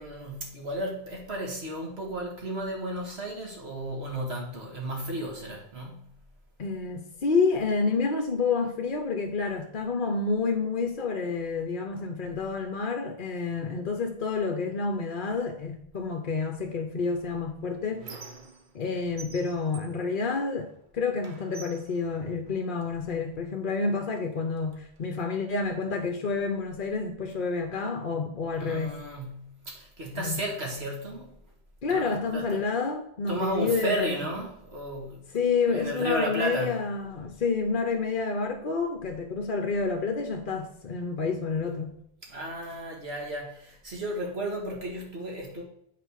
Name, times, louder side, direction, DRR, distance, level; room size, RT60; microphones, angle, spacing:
voice 1, 0.0-6.1 28.6-31.3 31.9-32.6 33.3-35.3 35.7-36.9 42.2-45.6, right 1 dB, 75° right, 2.2 m, -33 dB
voice 2, 6.6-18.0 18.7-29.0 30.1-30.4 31.8-34.2 35.3-42.0, left 4 dB, 55° left, 1.0 m, -29 dB
Squeak, 17.1-18.9 19.2-20.8 21.2-22.9 23.7-23.8 24.2-25.2, right 4 dB, 50° right, 1.1 m, -48 dB
8.8 x 4.2 x 6.4 m
omnidirectional pair, 1.1 m